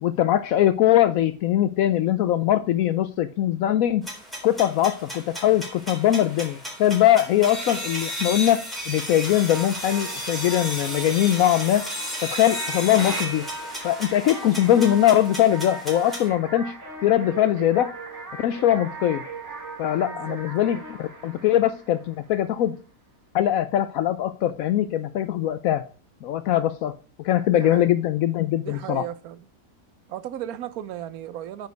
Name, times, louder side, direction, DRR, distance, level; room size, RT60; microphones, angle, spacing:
voice 1, 0.0-4.0 4.4-11.8 12.2-13.5 13.8-16.7 17.0-17.9 18.4-19.2 19.8-22.7 23.3-25.8 26.2-26.9 27.2-29.0, left 12 dB, 75° left, 1.0 m, -21 dB
sound 1, 4.0-16.3, equal, ahead, 3.7 m, -34 dB
sound 2, 9.1-22.5, right 3 dB, 50° right, 2.3 m, -39 dB
voice 2, 20.0-20.4 27.5-27.9 28.6-29.5 30.1-31.7, right 11 dB, 80° right, 1.2 m, -35 dB
9.3 x 5.2 x 4.6 m
omnidirectional pair, 1.5 m